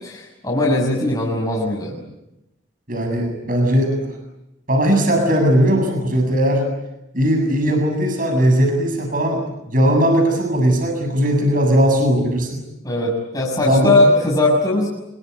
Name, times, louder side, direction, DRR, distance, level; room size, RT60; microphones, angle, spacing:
voice 1, 0.0-1.9 12.8-14.9, left 2 dB, 20° left, -4 dB, 6.5 m, -19 dB
voice 2, 2.9-4.1 4.7-6.6 7.1-12.6 13.6-14.0, equal, 40° right, 4 dB, 7.6 m, -18 dB
26.5 x 23.5 x 9.5 m, 0.90 s
head